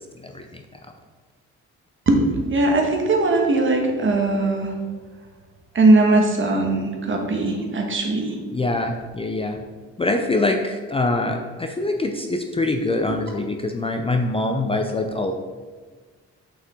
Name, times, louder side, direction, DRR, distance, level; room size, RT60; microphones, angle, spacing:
voice 1, 2.1-4.7 5.7-8.4 13.1-13.2, right 2 dB, 40° right, 2 dB, 1.3 m, -19 dB
voice 2, 8.5-9.6 10.0-15.3, left 2 dB, 20° left, 4 dB, 0.5 m, -24 dB
6.3 x 5.5 x 3.7 m, 1.4 s
cardioid pair, 90°, 30 cm